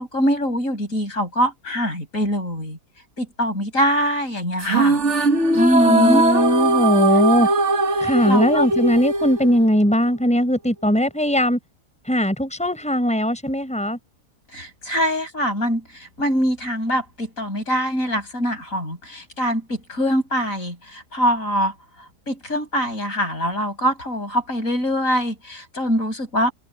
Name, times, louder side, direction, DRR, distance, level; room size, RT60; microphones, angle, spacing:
voice 1, 0.0-2.8 3.2-5.0 5.5-6.2 7.4-7.5 8.3-8.7 14.5-26.5, equal, 55° left, 7.1 m, -23 dB
sound 1, 4.6-10.1, right 2 dB, 50° right, 2.0 m, -20 dB
voice 2, 5.8-7.5 8.0-11.6 12.1-14.0, equal, 5° left, 5.8 m, -19 dB
omnidirectional pair, 1.6 m